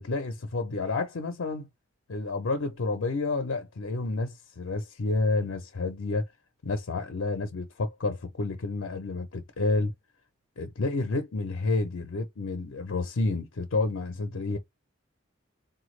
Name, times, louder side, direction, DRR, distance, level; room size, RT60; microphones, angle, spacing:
voice 1, 0.0-1.7 2.1-6.3 6.6-9.9 10.6-14.6, left 3 dB, 85° left, 0.6 m, -30 dB
3.8 x 2.3 x 3.1 m
head